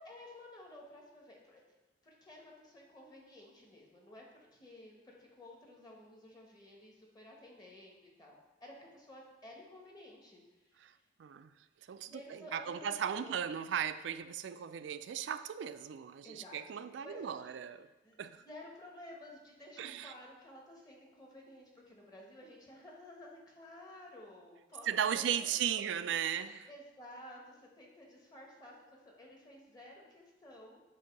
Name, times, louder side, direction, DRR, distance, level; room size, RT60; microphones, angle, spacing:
voice 1, 0.0-1.6 2.0-11.0 12.1-13.4 16.2-17.6 18.0-30.8, left 1 dB, 20° left, -1 dB, 1.2 m, -53 dB
voice 2, 11.9-17.9 18.2-18.4 19.8-20.1 24.8-26.6, right 8 dB, 70° right, 13 dB, 0.3 m, -36 dB
7.6 x 2.7 x 5.2 m, 1.1 s
head